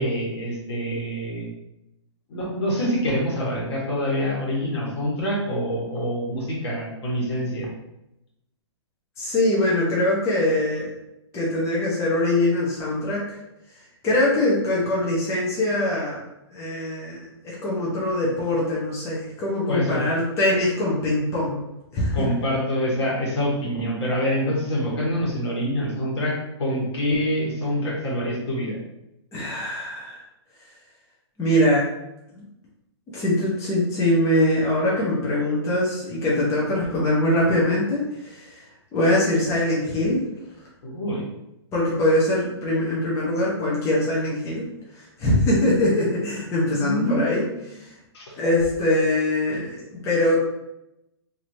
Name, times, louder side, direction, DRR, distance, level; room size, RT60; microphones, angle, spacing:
voice 1, 0.0-1.5 2.3-7.7 19.7-20.0 22.1-28.8 40.8-41.2 46.8-47.2 48.1-48.2, equal, 65° left, -4 dB, 1.4 m, -26 dB
voice 2, 9.2-10.9 11.3-13.4 14.0-16.2 16.5-21.6 21.9-22.3 29.3-30.2 31.4-31.9 32.3-32.4 33.1-38.6 38.9-40.2 41.7-44.6 44.9-47.9 48.4-50.4, left 1 dB, 20° left, -6 dB, 0.8 m, -23 dB
3.0 x 2.8 x 2.7 m, 0.87 s
hypercardioid pair, 135°, 15 cm